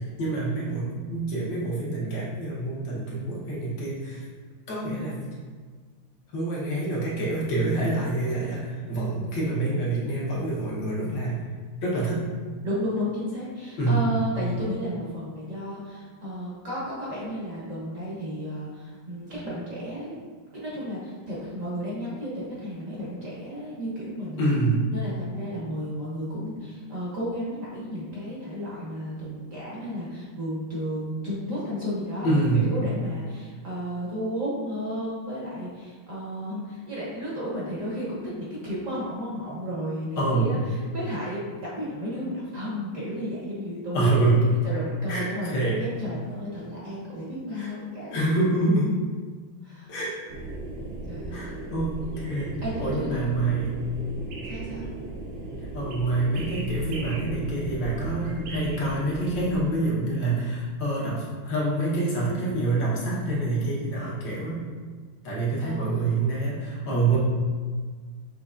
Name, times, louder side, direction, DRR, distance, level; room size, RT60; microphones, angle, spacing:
voice 1, 0.0-4.3 4.7-5.2 6.3-11.4 11.8-12.3 13.8-14.1 24.4-24.8 32.2-32.7 40.2-40.6 43.9-44.5 45.1-45.8 47.5-47.7 48.1-49.0 49.9-50.1 51.3-53.7 55.7-64.6 65.2-67.2, right 2 dB, 65° left, -6 dB, 1.6 m, -26 dB
voice 2, 12.6-20.2 20.5-24.5 24.9-44.1 44.6-48.4 49.6-49.9 51.0-51.7 52.6-53.7 54.4-54.9 65.6-66.2 66.9-67.1, equal, 50° right, -7 dB, 1.0 m, -33 dB
sound 1, 50.3-59.6, right 2 dB, 80° right, 1.6 m, -36 dB
6.7 x 2.9 x 2.4 m, 1.5 s
omnidirectional pair, 2.3 m